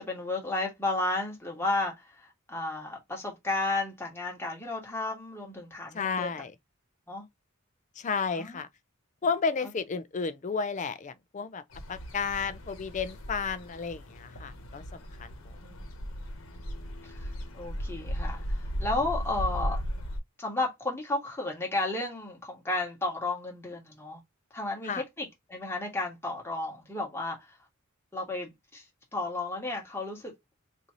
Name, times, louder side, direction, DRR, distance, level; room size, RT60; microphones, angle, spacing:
voice 1, 0.0-6.3 7.1-7.2 8.3-8.6 15.6-16.0 17.0-19.8 20.4-24.2 24.5-27.6 28.1-28.8 29.1-30.3, left 2 dB, 10° left, 1.4 m, -33 dB
voice 2, 5.9-6.5 8.0-8.7 9.2-11.6 11.9-14.8 15.2-15.3 24.9-25.0, left 5 dB, 35° left, 0.4 m, -32 dB
sound 1, 11.7-20.2, equal, 75° left, 1.1 m, -36 dB
3.1 x 2.6 x 3.8 m
head